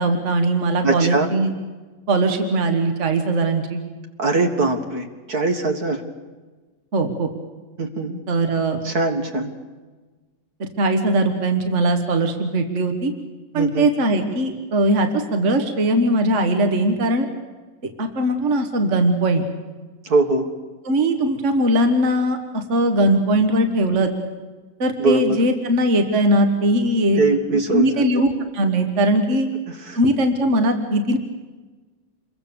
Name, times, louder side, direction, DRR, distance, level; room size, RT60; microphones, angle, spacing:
voice 1, 0.0-1.5 2.1-3.8 6.9-7.3 8.3-8.8 10.6-13.1 13.5-17.3 17.8-19.5 20.9-24.1 24.8-27.2 27.7-28.3 28.5-29.5 30.0-31.2, right 1 dB, 45° right, 6 dB, 1.8 m, -20 dB
voice 2, 0.8-1.3 4.2-6.0 7.8-8.2 8.8-9.5 13.5-13.9 20.0-20.5 25.0-25.4 27.2-28.0 29.7-30.0, right 2 dB, 60° right, 5 dB, 2.2 m, -21 dB
27.5 x 22.5 x 7.0 m, 1.3 s
omnidirectional pair, 1.9 m